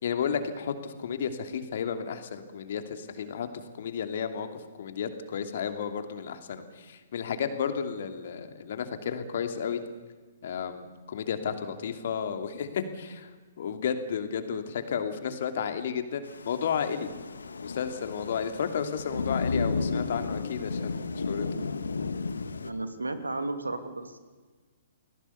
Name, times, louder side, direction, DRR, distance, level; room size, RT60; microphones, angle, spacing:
voice 1, 0.0-3.5 3.8-9.8 10.4-13.3 13.6-17.1 17.6-21.5, left 7 dB, 50° left, 7 dB, 2.8 m, -32 dB
Thunder / Rain, 16.3-22.7, left 4 dB, 70° left, 1.7 m, -33 dB
voice 2, 22.6-24.2, right 2 dB, 80° right, 9 dB, 2.7 m, -34 dB
29.5 x 20.5 x 7.1 m, 1.4 s
figure-of-eight pair, 120°, 0 cm